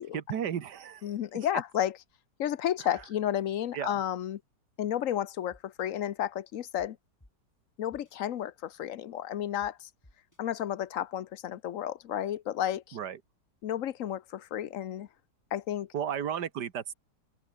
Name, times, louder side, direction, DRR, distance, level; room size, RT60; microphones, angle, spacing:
voice 1, 0.0-1.1 3.7-4.0 12.9-13.2 15.9-16.9, right 8 dB, 65° right, 2.0 m, -34 dB
voice 2, 1.0-2.0 2.4-4.4 4.8-7.0 7.8-9.9 10.4-13.0 13.6-15.1 15.5-15.9, left 10 dB, 55° left, 1.0 m, -32 dB
sound 1, 3.0-3.1 3.5-3.6 5.5-5.9 6.8-6.9 7.2-7.3 7.9-8.1 9.6-9.7 10.0-10.4, left 1 dB, 10° left, 3.3 m, -57 dB
open air
omnidirectional pair, 1.9 m